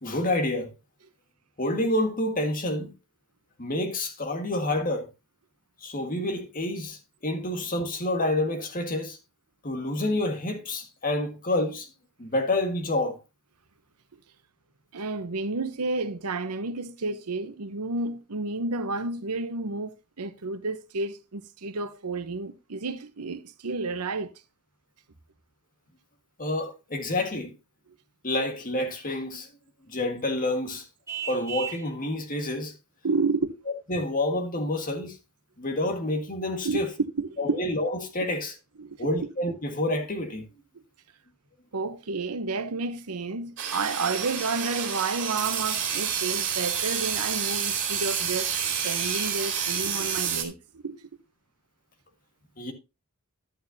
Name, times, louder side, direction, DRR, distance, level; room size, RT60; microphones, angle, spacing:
voice 1, 0.0-0.7 1.6-2.9 3.6-5.0 5.8-7.0 7.2-9.2 9.6-11.9 12.2-13.2 26.4-27.5 28.2-29.5 29.9-30.8 31.3-32.7 33.9-35.2 35.6-36.9 37.4-38.5 39.0-40.4 52.6-52.7, left 1 dB, 40° left, 1.7 m, -28 dB
voice 2, 14.9-24.3 33.0-33.5 36.6-36.8 37.2-37.6 38.8-39.1 41.7-48.5 48.8-51.0, right 3 dB, 90° right, 0.9 m, -31 dB
Vehicle horn car horn honking, 31.1-31.9, right 9 dB, 15° right, 2.5 m, -35 dB
sound 1, 43.6-50.4, right 7 dB, 55° right, 2.6 m, -29 dB
11.0 x 9.0 x 2.7 m
head